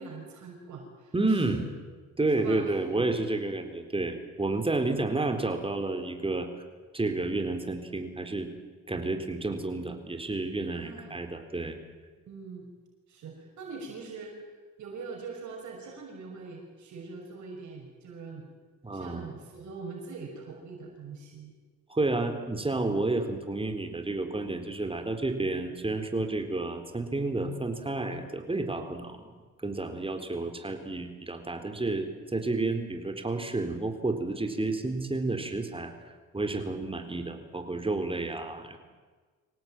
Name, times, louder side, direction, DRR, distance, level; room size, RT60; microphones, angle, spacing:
voice 1, 0.0-1.6 2.3-3.0 10.7-11.1 12.3-12.7 13.1-14.5 14.8-18.5 18.9-21.5, right 4 dB, 70° right, 1 dB, 6.0 m, -43 dB
voice 2, 1.1-1.6 2.2-6.5 6.9-8.5 8.9-11.8 18.8-19.3 21.9-29.2 29.6-35.9 36.3-38.8, right 2 dB, 20° right, 6 dB, 4.0 m, -30 dB
25.5 x 18.0 x 9.1 m, 1.4 s
cardioid pair, 90°, 30 cm